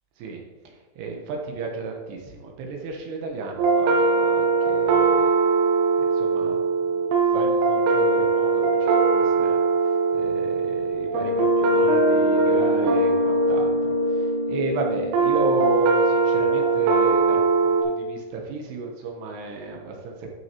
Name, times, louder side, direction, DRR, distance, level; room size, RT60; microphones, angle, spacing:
voice 1, 0.2-5.3 6.0-20.4, right 3 dB, 75° right, 1 dB, 2.6 m, -33 dB
sound 1, 3.6-17.8, right 3 dB, 90° right, 3.6 m, -21 dB
11.0 x 6.3 x 2.9 m, 1.2 s
omnidirectional pair, 5.6 m